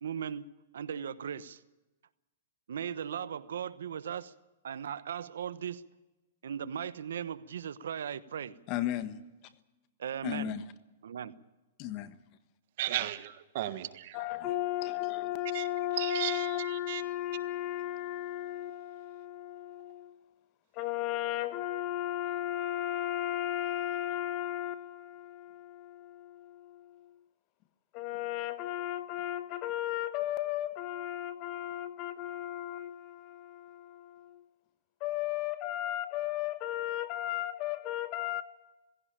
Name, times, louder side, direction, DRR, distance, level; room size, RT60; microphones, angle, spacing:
voice 1, 0.0-0.5 0.7-1.6 2.7-4.3 4.6-5.9 6.4-8.6 10.0-10.5 11.0-11.3, right 8 dB, 80° right, 1.0 m, -37 dB
voice 2, 8.7-9.2 10.2-10.6 11.8-12.1 14.1-20.2 20.7-27.2 27.9-34.4 35.0-38.4, left 13 dB, 40° left, 1.4 m, -35 dB
voice 3, 12.8-14.2 15.5-15.7 16.0-17.0, right 13 dB, 55° right, 1.5 m, -35 dB
18.5 x 16.5 x 8.8 m
hypercardioid pair, 140°, 0 cm